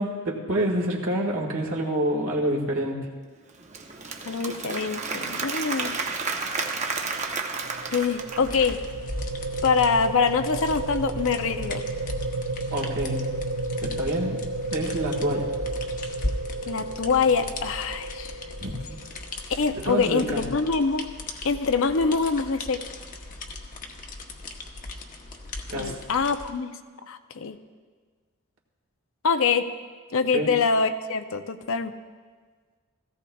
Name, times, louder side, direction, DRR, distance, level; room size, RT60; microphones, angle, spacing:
voice 1, 0.0-3.0 12.7-13.2 13.8-14.4 14.7-15.5 18.6-19.0 19.7-20.5 25.7-26.0 30.3-30.6, right 1 dB, 60° right, -1 dB, 1.7 m, -27 dB
Applause / Crowd, 3.5-8.9, right 4 dB, 30° right, 0.8 m, -31 dB
voice 2, 4.2-5.9 7.9-8.8 9.6-11.8 16.7-18.3 19.5-21.1 21.4-22.8 25.7-26.7 27.1-27.6 29.2-29.7 30.1-31.9, left 5 dB, 60° left, 9 dB, 0.6 m, -24 dB
sound 1, 7.2-19.4, right 2 dB, 80° right, 0.8 m, -33 dB
sound 2, 8.4-26.5, left 2 dB, 35° left, 0.9 m, -38 dB
17.0 x 15.5 x 2.3 m, 1.5 s
head